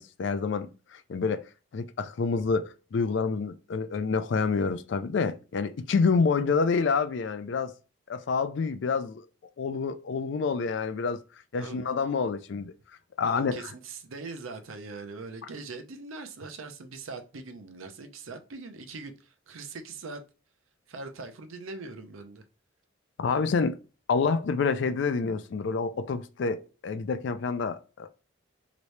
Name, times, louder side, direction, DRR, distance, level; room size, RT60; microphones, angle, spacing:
voice 1, 0.0-1.4 1.7-7.7 8.1-9.2 9.6-11.2 11.5-12.7 13.2-13.6 23.2-23.8 24.1-28.1, left 4 dB, 60° left, 0.3 m, -28 dB
voice 2, 13.2-20.2 20.9-22.4, right 3 dB, 80° right, 0.6 m, -41 dB
3.2 x 3.0 x 2.6 m
head